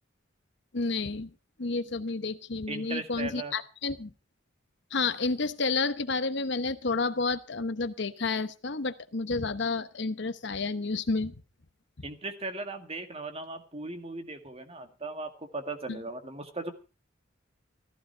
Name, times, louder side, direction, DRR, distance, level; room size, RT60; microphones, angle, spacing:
voice 1, 0.7-1.3 1.6-4.1 4.9-11.3 15.9-16.0, left 3 dB, 65° left, 12 dB, 1.0 m, -30 dB
voice 2, 2.7-3.5 12.0-16.7, right 2 dB, 30° right, 7 dB, 2.0 m, -38 dB
15.0 x 14.5 x 4.4 m, 0.33 s
head